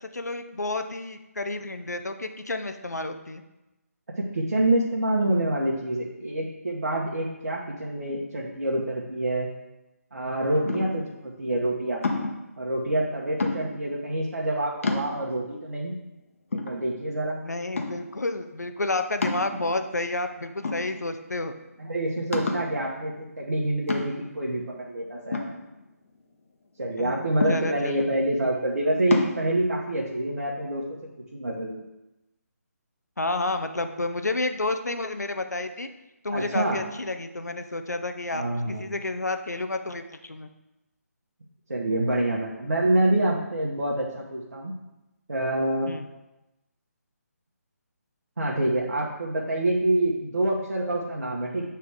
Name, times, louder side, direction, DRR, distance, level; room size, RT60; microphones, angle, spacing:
voice 1, 0.0-3.4 17.4-21.5 27.0-28.1 33.2-35.9 36.2-38.4 38.7-40.5 45.9-46.0, left 2 dB, 85° left, 8 dB, 0.6 m, -30 dB
voice 2, 4.2-9.5 10.1-12.0 12.6-16.0 16.5-17.4 21.8-25.5 26.8-30.8 31.3-31.8 36.3-36.8 38.3-38.8 41.7-44.8 45.3-45.9 48.4-51.6, right 1 dB, 70° right, -3 dB, 1.2 m, -26 dB
sound 1, 10.7-11.1 12.0-12.5 13.4-13.9 14.4-14.5 14.8-15.5 16.0-16.1 16.5-17.3 17.8-18.2 19.2-19.9 20.6-21.3 21.6-21.7 22.3-22.8 23.9-24.4 25.3-26.2 27.4-28.0 29.1-29.4, left 3 dB, 55° left, 1.0 m, -29 dB
8.1 x 3.5 x 4.7 m, 0.98 s
figure-of-eight pair, 150°, 9 cm